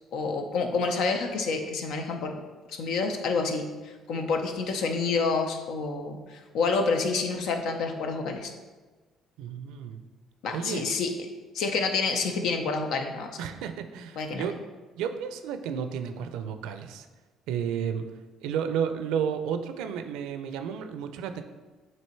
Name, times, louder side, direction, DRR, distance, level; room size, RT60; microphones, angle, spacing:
voice 1, 0.1-2.4 2.7-8.5 10.4-11.1 11.5-13.4 14.2-14.5, left 4 dB, 75° left, 5 dB, 0.7 m, -28 dB
voice 2, 9.4-10.0 10.5-10.9 13.4-14.6 15.0-17.1 17.5-18.1 18.4-21.4, right 8 dB, 80° right, 8 dB, 0.5 m, -32 dB
7.5 x 3.0 x 4.4 m, 1.3 s
supercardioid pair, 75°, 0 cm